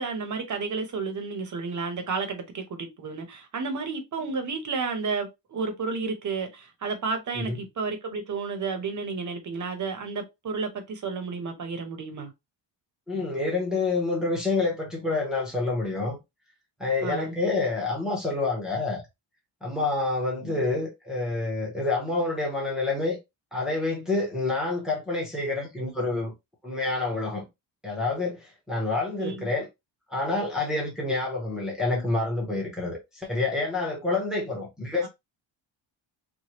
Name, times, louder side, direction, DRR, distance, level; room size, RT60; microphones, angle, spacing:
voice 1, 0.0-12.3 13.1-13.3 17.0-17.4 20.4-20.6 29.2-29.5 35.0-35.1, right 4 dB, 40° right, 0.8 m, -32 dB
voice 2, 13.1-16.2 16.8-19.0 19.6-23.2 23.5-26.3 26.6-27.5 27.8-29.7 30.1-35.1, left 3 dB, ahead, 0.8 m, -28 dB
3.2 x 2.3 x 2.9 m
wide cardioid pair, 150°, 48 cm